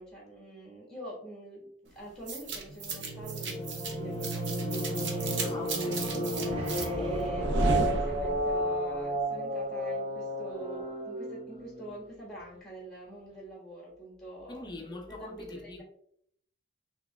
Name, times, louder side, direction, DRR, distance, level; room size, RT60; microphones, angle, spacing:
voice 1, 0.0-1.7 1.9-15.8, right 1 dB, 5° left, -3 dB, 1.4 m, -45 dB
sound 1, 2.3-8.6, right 1 dB, 70° right, 0.7 m, -31 dB
voice 2, 5.4-6.1 14.5-15.8, left 2 dB, 20° left, 2 dB, 0.5 m, -43 dB
sound 2, 6.4-12.0, right 1 dB, 30° right, 0.6 m, -32 dB
5.9 x 2.8 x 2.3 m, 0.68 s
head